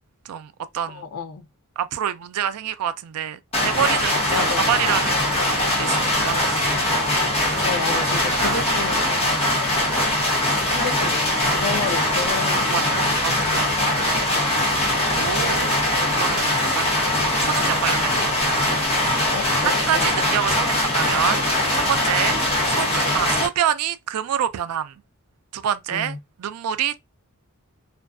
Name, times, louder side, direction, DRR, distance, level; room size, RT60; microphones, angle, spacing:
voice 1, 0.3-1.0 1.8-6.7 7.3-7.7 8.3-8.9 9.3-10.0 11.7-11.9 12.7-14.1 15.2-15.7 16.2-18.3 19.4-21.4 21.7-22.4 22.8-25.0 25.5-27.0, right 9 dB, 90° right, 0.3 m, -27 dB
voice 2, 0.9-1.4 4.3-4.6 7.6-9.4 10.7-11.3 11.6-12.7 13.0-13.1 15.3-15.8 19.3-20.3 25.9-26.2, left 5 dB, 85° left, 0.5 m, -31 dB
sound 1, 3.5-23.5, left 1 dB, 25° left, 0.7 m, -21 dB
2.5 x 2.2 x 2.3 m
head